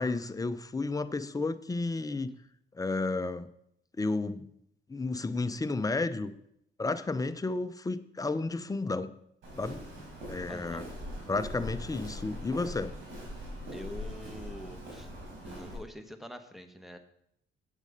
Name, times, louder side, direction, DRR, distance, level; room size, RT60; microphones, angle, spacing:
voice 1, 0.0-2.3 2.7-3.5 4.0-4.5 4.9-6.3 6.8-9.1 9.6-9.8 10.3-10.9 11.3-12.9, left 3 dB, 15° left, 11 dB, 0.6 m, -32 dB
Walk footsteps, 9.4-15.8, left 1 dB, 75° right, 4.7 m, -42 dB
voice 2, 10.5-10.8 13.7-15.1 15.5-17.0, equal, ahead, 8 dB, 1.1 m, -45 dB
8.4 x 8.2 x 5.2 m, 0.74 s
cardioid pair, 90°, 20 cm